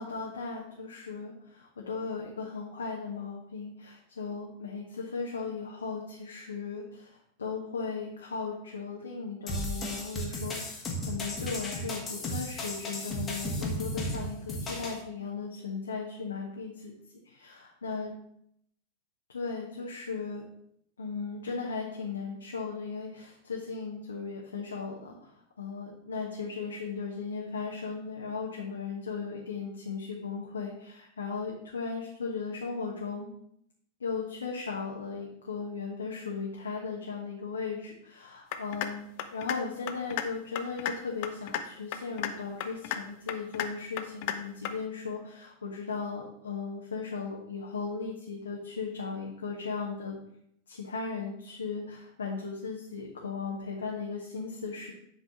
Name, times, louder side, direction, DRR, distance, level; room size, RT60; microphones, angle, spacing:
voice 1, 0.0-16.9 17.2-18.1 19.3-20.5 21.0-25.1 25.6-33.3 34.0-50.2 50.7-54.9, left 5 dB, 70° left, -2 dB, 1.2 m, -37 dB
sound 1, 9.5-15.0, equal, 20° left, 1.8 m, -35 dB
sound 2, 38.5-38.9 39.2-39.6 39.9-40.2 40.5-40.9 41.2-41.6 41.9-42.3 42.6-43.0 43.3-43.7 44.0-44.3 44.6-44.7, left 12 dB, 45° left, 0.7 m, -32 dB
8.2 x 4.1 x 6.2 m, 0.72 s
figure-of-eight pair, 90°, 0 cm